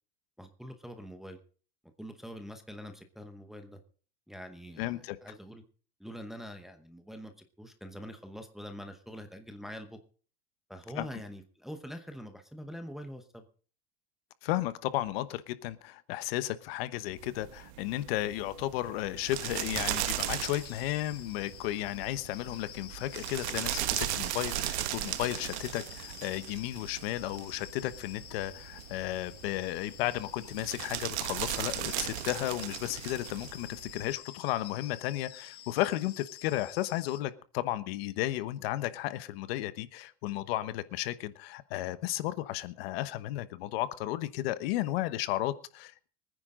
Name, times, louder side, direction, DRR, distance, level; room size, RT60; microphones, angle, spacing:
voice 1, 0.4-1.4 2.0-3.8 4.3-5.6 6.0-7.3 7.6-10.0 10.7-13.5, equal, ahead, 5 dB, 0.9 m, -44 dB
voice 2, 4.8-5.2 11.0-11.1 14.4-46.1, left 15 dB, 65° left, 14 dB, 1.1 m, -34 dB
sound 1, 17.2-34.1, right 14 dB, 90° right, 1.3 m, -37 dB
sound 2, 19.2-37.2, left 11 dB, 30° left, 1.3 m, -50 dB
24.0 x 9.9 x 3.8 m, 0.41 s
supercardioid pair, 175°, 32 cm